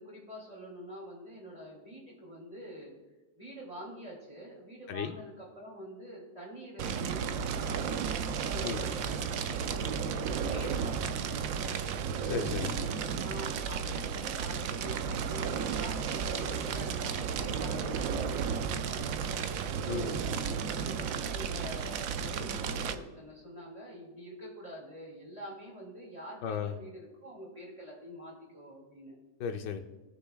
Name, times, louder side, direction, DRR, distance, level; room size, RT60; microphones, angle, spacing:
voice 1, 0.0-2.9 3.3-7.8 8.2-11.7 13.2-19.6 20.7-29.1, equal, 20° right, -3 dB, 2.8 m, -46 dB
Fire, 6.8-22.9, right 6 dB, 70° right, 0.8 m, -33 dB
voice 2, 12.3-12.7 19.9-20.2 26.4-26.7 29.4-29.8, left 7 dB, 80° left, 6 dB, 1.3 m, -34 dB
18.5 x 6.7 x 2.3 m, 1.1 s
omnidirectional pair, 1.9 m